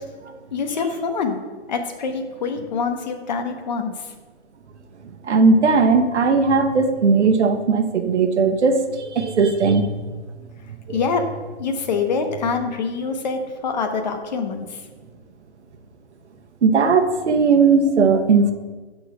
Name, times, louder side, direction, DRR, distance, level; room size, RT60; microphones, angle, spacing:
voice 1, 0.5-1.4 1.7-3.9 10.9-11.2 11.6-14.8, left 5 dB, 40° left, 5 dB, 0.7 m, -25 dB
voice 2, 5.2-9.9 10.9-11.1 16.6-18.5, right 4 dB, 85° right, 6 dB, 1.0 m, -17 dB
6.2 x 3.9 x 5.8 m, 1.3 s
hypercardioid pair, 165°, 34 cm